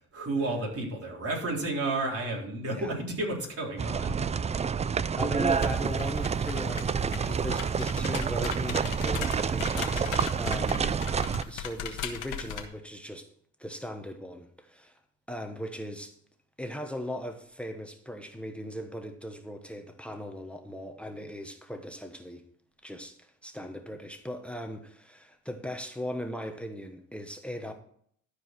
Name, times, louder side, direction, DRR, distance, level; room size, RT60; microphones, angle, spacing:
voice 1, 0.1-4.2, right 2 dB, 50° right, 3.8 m, -31 dB
voice 2, 2.6-2.9 5.2-11.0 11.5-13.3 13.6-14.9 15.3-16.1 16.6-22.4 22.8-27.7, equal, 5° left, 1.2 m, -38 dB
sound 1, 3.8-11.4, right 6 dB, 25° right, 0.4 m, -28 dB
sound 2, 5.5-12.7, left 8 dB, 90° left, 1.4 m, -39 dB
12.5 x 4.8 x 6.0 m
cardioid pair, 90°, 30 cm